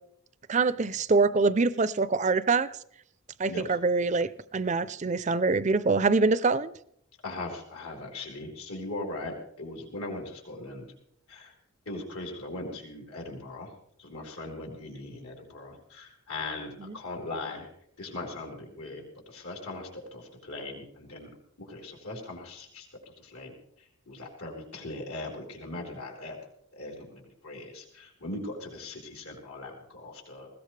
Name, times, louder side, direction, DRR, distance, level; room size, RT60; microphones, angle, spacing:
voice 1, 0.5-2.7 3.4-6.7 16.8-16.9, right 3 dB, 30° right, 0.4 m, -25 dB
voice 2, 3.4-3.7 7.2-10.9 11.3-11.5 11.9-13.7 14.0-17.7 18.0-21.3 21.7-22.9 23.2-23.5 23.8-26.4 26.7-30.5, left 2 dB, 80° left, 4.5 m, -39 dB
20.0 x 16.5 x 3.3 m
head